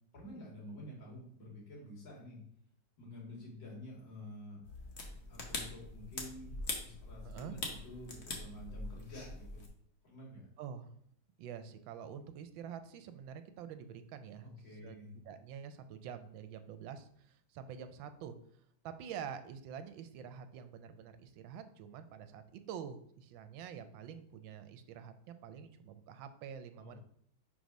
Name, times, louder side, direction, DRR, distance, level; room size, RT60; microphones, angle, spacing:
voice 1, 0.1-2.4 3.0-4.6 5.3-6.5 6.8-7.6 7.8-9.6 10.0-10.5 14.4-15.1 26.8-27.0, left 1 dB, 65° left, -4 dB, 2.9 m, -49 dB
sound 1, 4.6-9.7, left 2 dB, 45° left, 1.0 m, -43 dB
voice 2, 7.2-7.5 10.6-10.9 11.4-15.0 15.2-27.0, right 8 dB, 75° right, 10 dB, 1.3 m, -47 dB
4.7 x 3.9 x 5.2 m, 0.66 s
omnidirectional pair, 2.2 m